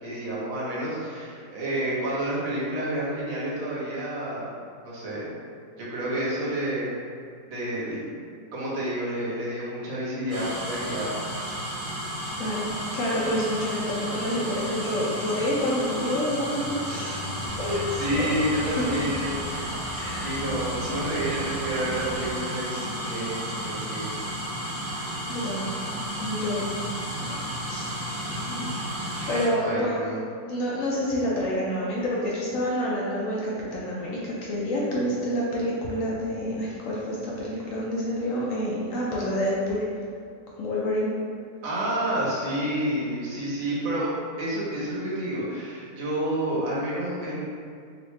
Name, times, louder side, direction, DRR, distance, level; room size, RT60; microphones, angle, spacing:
voice 1, 0.0-4.5 4.8-5.3 5.8-6.9 7.5-8.0 8.5-11.1 11.4-11.7 17.0-17.2 17.6-24.2 24.5-24.9 28.2-28.8 29.1-30.2 41.6-47.4, right 1 dB, 60° right, -7 dB, 1.2 m, -30 dB
sound 1, 10.3-29.5, equal, 15° right, 0.6 m, -33 dB
voice 2, 12.4-17.2 17.6-17.8 18.2-19.0 19.9-20.4 25.3-25.7 26.2-26.7 27.3-27.4 27.7-28.4 29.2-30.0 30.5-39.8 40.6-41.1, equal, 70° left, -5 dB, 0.9 m, -28 dB
Bowed string instrument, 16.5-20.2, left 4 dB, 85° right, 1.3 m, -41 dB
sound 2, 17.4-22.4, right 1 dB, 35° left, 1.0 m, -38 dB
3.0 x 2.9 x 3.1 m, 2.2 s
omnidirectional pair, 1.7 m